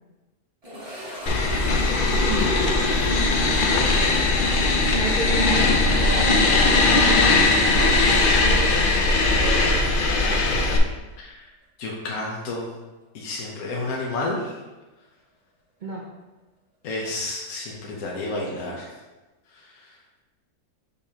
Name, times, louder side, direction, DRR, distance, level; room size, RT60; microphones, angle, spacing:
sound 1, 0.6-9.5 9.8-9.9 10.5-10.6 13.2-13.3, equal, 25° right, 1.5 m, -41 dB
sound 2, 1.3-10.8, left 3 dB, 55° left, 0.6 m, -19 dB
voice 1, 1.9-2.6 4.9-9.9 10.2-10.7 15.8-16.1, right 3 dB, 60° right, -1 dB, 0.5 m, -34 dB
voice 2, 11.8-12.7 13.1-14.5 16.8-18.9 19.5-19.7, left 2 dB, 75° left, -3 dB, 1.3 m, -30 dB
6.9 x 5.3 x 2.9 m, 1.2 s
omnidirectional pair, 1.6 m